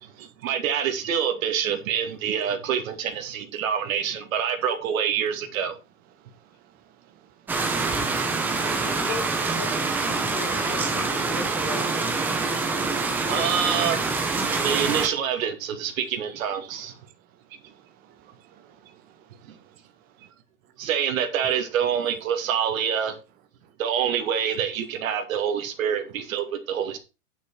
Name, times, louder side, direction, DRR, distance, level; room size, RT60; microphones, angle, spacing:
voice 1, 0.2-5.7 13.3-14.0 14.6-16.9 19.5-19.6 20.8-23.2 23.8-27.0, right 8 dB, 65° right, 2.3 m, -26 dB
voice 2, 6.1-9.1 16.7-20.3 23.6-23.7, right 10 dB, 20° right, 0.9 m, -58 dB
sound 1, 7.5-15.1, right 3 dB, 5° right, 0.5 m, -25 dB
voice 3, 8.6-9.7 10.0-12.0 13.1-13.6, left 5 dB, 20° left, 1.4 m, -37 dB
9.4 x 6.6 x 4.6 m
supercardioid pair, 160°, 44 cm